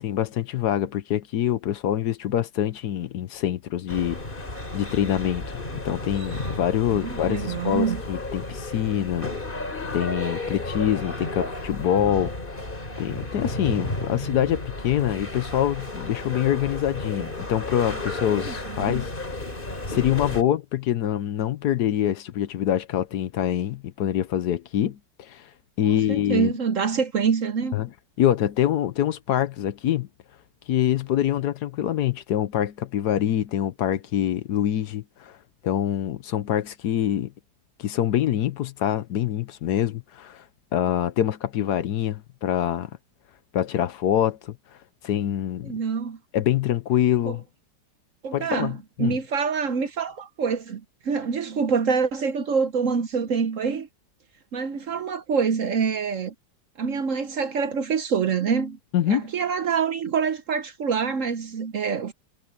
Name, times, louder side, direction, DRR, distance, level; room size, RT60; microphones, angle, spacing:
voice 1, 0.0-4.2 4.7-9.3 9.9-12.6 13.0-19.1 19.9-25.5 25.8-26.5 27.7-27.9 28.2-30.1 30.7-35.4 35.6-37.3 37.8-40.4 40.7-42.9 43.5-44.6 45.0-45.7 46.3-47.4 48.3-49.2 58.9-59.3, left 11 dB, 70° left, 1.3 m, -25 dB
sound 1, 3.9-20.4, left 2 dB, 30° left, 3.7 m, -33 dB
voice 2, 6.9-8.0 18.4-19.0 25.8-27.8 45.6-46.2 47.2-47.4 48.2-53.9 54.5-56.3 56.8-58.8 59.1-62.1, right 6 dB, 55° right, 1.0 m, -26 dB
omnidirectional pair, 1.9 m